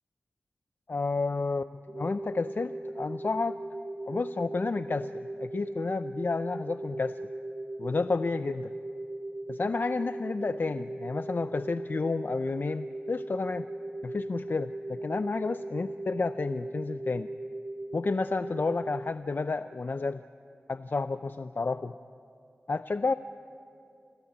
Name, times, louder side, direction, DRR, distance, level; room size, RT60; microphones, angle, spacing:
voice 1, 0.9-3.6 4.1-5.1 5.4-7.2 7.8-8.7 9.5-13.7 14.0-17.3 17.9-20.2 20.7-22.0 22.7-23.1, left 3 dB, 55° left, 12 dB, 0.5 m, -31 dB
sound 1, 1.9-19.1, right 2 dB, 30° right, 3.4 m, -38 dB
26.5 x 16.5 x 8.2 m, 2.5 s
cardioid pair, 45°, 4 cm